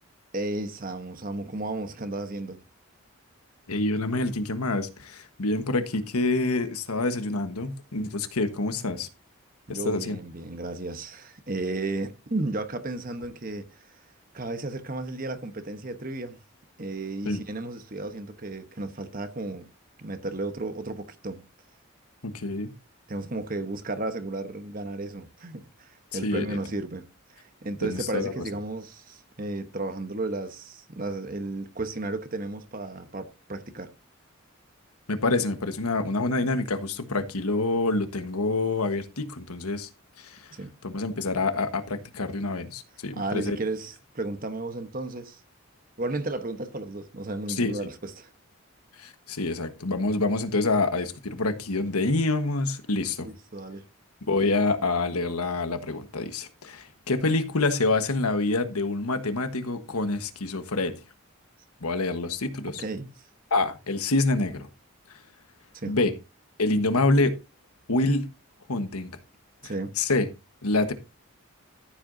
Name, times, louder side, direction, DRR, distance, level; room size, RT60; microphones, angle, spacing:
voice 1, 0.3-2.6 9.7-13.9 14.3-16.4 16.8-19.6 20.0-21.4 23.1-27.1 27.4-33.9 40.5-40.7 43.2-45.4 46.0-48.3 53.2-53.8 62.8-63.1 65.7-66.0 69.6-69.9, right 2 dB, 40° right, 1.1 m, -33 dB
voice 2, 3.7-9.1 9.7-10.2 17.2-17.4 22.2-22.7 26.1-26.6 27.8-28.4 35.1-39.9 40.2-40.4 40.8-43.6 47.5-47.8 49.0-53.3 54.3-61.0 61.8-62.8 63.5-64.7 65.8-66.1 66.6-67.4 67.9-68.3 68.7-69.1 70.0-70.3 70.6-70.9, left 2 dB, 90° left, 1.4 m, -26 dB
14.0 x 7.9 x 2.7 m
head